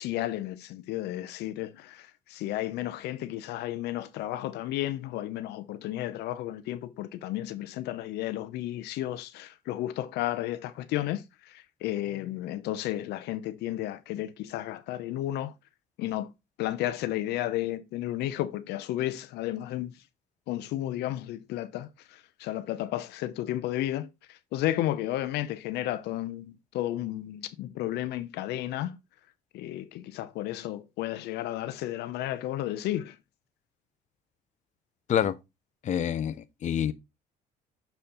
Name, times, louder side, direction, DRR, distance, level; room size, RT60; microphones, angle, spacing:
voice 1, 0.0-15.5 16.0-16.3 16.6-20.0 20.5-29.0 29.5-33.2, left 14 dB, 80° left, 0.6 m, -33 dB
voice 2, 35.8-36.9, left 9 dB, 45° left, 0.7 m, -27 dB
6.9 x 4.3 x 3.7 m
cardioid pair, 110°, 17 cm